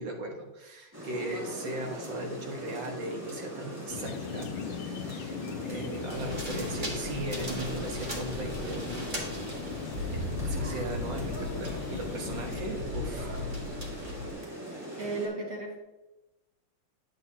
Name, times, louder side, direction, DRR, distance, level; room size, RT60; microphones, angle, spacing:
voice 1, 0.0-8.8 10.2-13.4, right 1 dB, 65° right, 1 dB, 2.1 m, -38 dB
Rain, 0.9-15.3, equal, 5° right, 2.9 m, -41 dB
sound 1, 3.9-12.6, left 8 dB, 80° left, 1.4 m, -40 dB
sound 2, 6.1-14.3, left 1 dB, 25° right, 1.8 m, -37 dB
voice 2, 15.0-15.8, right 2 dB, 85° right, -4 dB, 3.4 m, -35 dB
10.5 x 7.6 x 2.8 m, 1.0 s
omnidirectional pair, 2.3 m